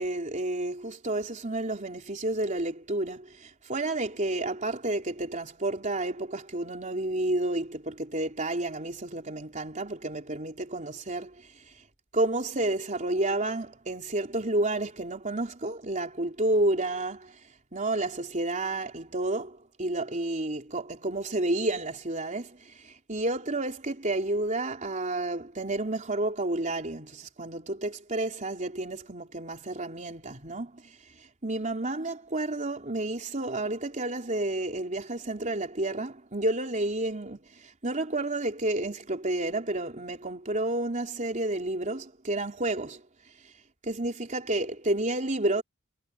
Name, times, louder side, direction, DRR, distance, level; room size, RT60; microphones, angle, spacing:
voice 1, 0.0-11.3 12.1-17.3 17.7-22.6 22.8-30.9 31.4-37.4 37.8-43.0 43.8-45.6, right 2 dB, 35° right, 3.8 m, -30 dB
head